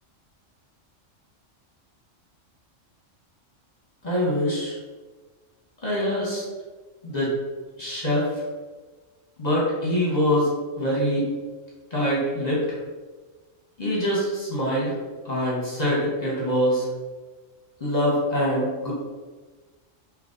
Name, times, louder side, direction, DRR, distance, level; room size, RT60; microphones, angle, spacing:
voice 1, 4.0-4.8 5.8-6.4 7.0-7.3 7.8-8.4 9.4-10.5 10.8-11.2 11.9-12.7 13.8-15.0 15.2-16.9 17.8-18.9, equal, 35° left, -6 dB, 1.0 m, -24 dB
3.8 x 2.8 x 3.8 m, 1.3 s
omnidirectional pair, 1.3 m